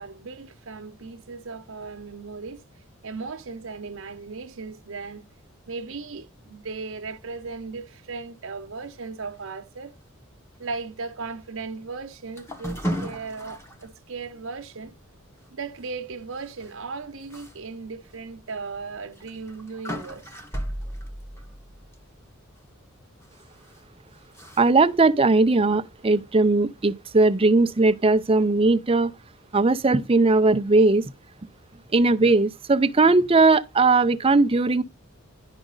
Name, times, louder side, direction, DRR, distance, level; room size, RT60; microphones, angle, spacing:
voice 1, 0.0-2.6 3.0-5.2 5.7-9.9 10.6-14.9 15.5-20.3, right 4 dB, 70° right, 0.8 m, -37 dB
sound 1, 12.4-13.9 14.3-14.4 14.8-15.0 16.6-16.7 17.3-17.5 18.0-18.1 19.2-22.3 23.2-23.8 24.3-24.6, equal, 15° left, 1.4 m, -35 dB
voice 2, 24.6-29.1 29.5-31.1 31.9-34.8, right 3 dB, 25° right, 0.5 m, -19 dB
10.5 x 5.0 x 3.8 m
head